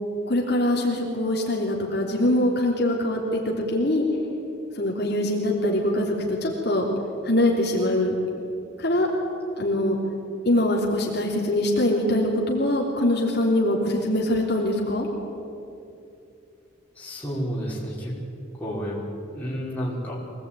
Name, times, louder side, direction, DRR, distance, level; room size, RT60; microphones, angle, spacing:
voice 1, 0.3-4.0 4.7-6.9 7.2-8.1 8.8-9.1 9.6-10.0 10.4-15.1, left 1 dB, 50° left, -2 dB, 3.4 m, -23 dB
voice 2, 17.0-18.2 18.6-19.0 19.3-20.2, equal, 10° left, -6 dB, 5.5 m, -30 dB
24.5 x 19.0 x 9.3 m, 2.6 s
head